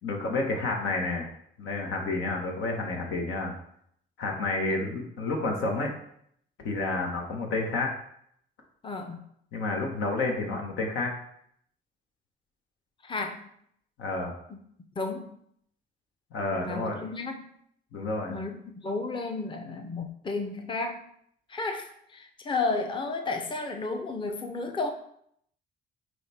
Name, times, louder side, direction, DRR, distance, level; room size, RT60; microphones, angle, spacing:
voice 1, 0.0-1.3 1.6-3.5 4.2-5.9 6.6-7.9 9.5-11.1 14.0-14.3 16.3-17.0 17.9-18.4, left 3 dB, 80° left, 1 dB, 1.4 m, -30 dB
voice 2, 8.8-9.2 13.0-13.5 15.0-15.3 16.5-17.5 18.3-18.5 18.8-21.0 21.5-24.9, left 3 dB, 25° left, 4 dB, 0.7 m, -32 dB
9.6 x 3.2 x 3.5 m, 0.70 s
cardioid pair, 90°, 20 cm